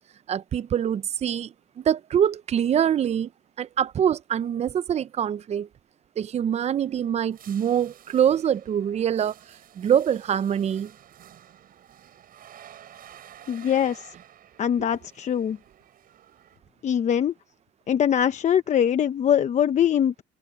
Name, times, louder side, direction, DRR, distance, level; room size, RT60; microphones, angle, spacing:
voice 1, 0.3-3.3 3.6-5.7 6.2-9.3 9.8-10.9, right 9 dB, 40° right, 0.6 m, -24 dB
sound 1, 6.7-16.6, right 10 dB, 60° right, 6.9 m, -51 dB
voice 2, 13.5-14.1 14.6-15.6 16.8-17.3 17.9-20.2, left 9 dB, 45° left, 0.9 m, -22 dB
cardioid pair, 110°, 17 cm